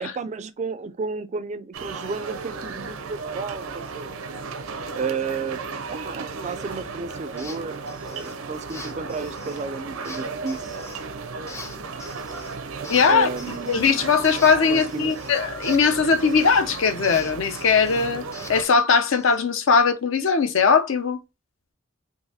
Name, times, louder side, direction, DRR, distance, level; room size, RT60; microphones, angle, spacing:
voice 1, 0.0-3.6 3.9-4.1 5.0-5.6 5.9-10.8 13.1-14.0 14.7-15.1, right 4 dB, 35° right, 0.3 m, -32 dB
sound 1, 1.7-18.6, right 4 dB, 85° right, 0.6 m, -35 dB
sound 2, 7.4-7.6 7.9-8.3 8.7-9.6 10.0-11.0 11.5-12.6 12.8-16.7 17.0-19.4, left 3 dB, 15° left, 0.6 m, -42 dB
voice 2, 12.9-13.3 13.7-18.2 18.5-21.2, left 5 dB, 65° left, 0.6 m, -20 dB
3.9 x 2.6 x 2.7 m
head